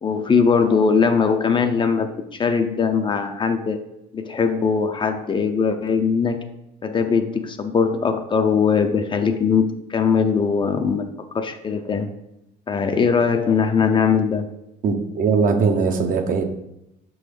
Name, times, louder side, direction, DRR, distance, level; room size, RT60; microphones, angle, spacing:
voice 1, 0.0-3.8 4.1-6.4 6.8-12.1 12.7-14.5, left 5 dB, 30° left, 0.5 m, -20 dB
voice 2, 14.8-16.4, right 5 dB, 55° right, 0.8 m, -20 dB
6.0 x 3.9 x 4.9 m
cardioid pair, 110°, 17 cm